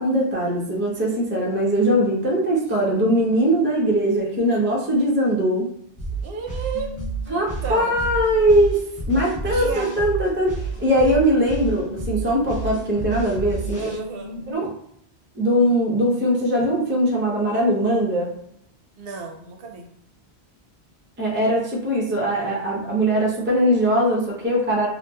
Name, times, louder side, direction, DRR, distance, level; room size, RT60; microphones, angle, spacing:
voice 1, 0.0-5.7 7.3-8.8 9.1-13.9 14.5-14.7 15.4-18.3 21.2-24.9, equal, 20° right, -3 dB, 0.3 m, -21 dB
sound 1, 6.0-14.0, right 4 dB, 30° left, 0.9 m, -30 dB
voice 2, 6.2-6.9 7.3-8.0 9.5-10.0 13.8-14.4 19.0-19.9, right 5 dB, 70° right, 2 dB, 0.8 m, -32 dB
sound 2, 6.7-9.1 9.3-14.5, left 3 dB, 65° left, 0.7 m, -39 dB
2.9 x 2.3 x 2.2 m, 0.70 s
omnidirectional pair, 1.1 m